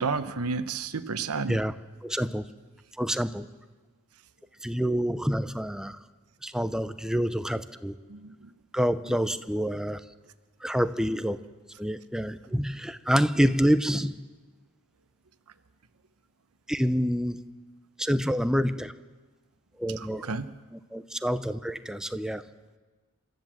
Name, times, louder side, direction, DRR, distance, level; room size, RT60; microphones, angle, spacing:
voice 1, 0.0-1.6 8.1-8.3 20.0-20.5, right 4 dB, 85° right, 11 dB, 0.9 m, -31 dB
voice 2, 2.0-2.4 3.0-3.5 4.6-6.0 6.4-7.9 8.7-10.0 10.6-11.4 11.8-14.2 16.7-17.4 18.0-18.9 19.8-20.4 20.7-22.4, equal, 5° right, 11 dB, 0.7 m, -27 dB
27.5 x 13.5 x 7.5 m, 1.3 s
head